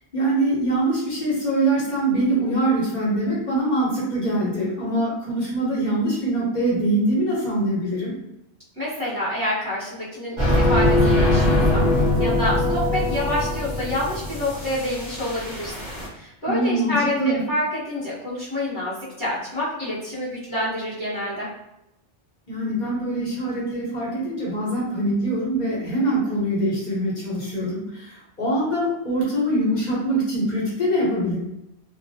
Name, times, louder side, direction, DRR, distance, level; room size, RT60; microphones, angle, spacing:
voice 1, 0.1-8.1 16.4-17.4 22.5-31.4, right 1 dB, 40° left, -6 dB, 0.9 m, -23 dB
voice 2, 8.8-15.7 16.1-21.5, left 1 dB, 5° right, -11 dB, 0.9 m, -27 dB
sound 1, 10.4-16.1, left 1 dB, 30° right, 0.6 m, -22 dB
2.3 x 2.0 x 2.7 m, 0.87 s
omnidirectional pair, 1.2 m